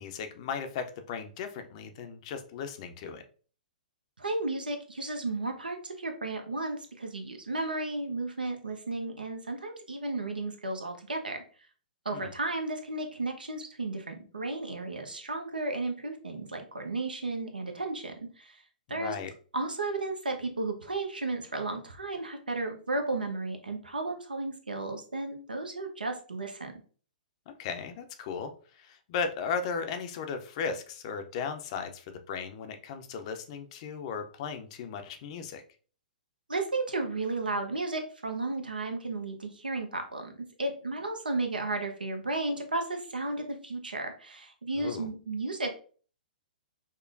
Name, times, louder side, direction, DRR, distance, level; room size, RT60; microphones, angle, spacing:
voice 1, 0.0-3.2 12.1-12.3 18.9-19.3 27.5-35.6 44.8-45.1, left 6 dB, 45° left, 7 dB, 0.5 m, -36 dB
voice 2, 4.2-11.4 12.0-18.6 18.9-19.1 19.5-26.7 36.5-45.7, right 2 dB, 80° right, 5 dB, 0.8 m, -34 dB
5.1 x 2.2 x 2.5 m, 0.40 s
figure-of-eight pair, 115°, 5 cm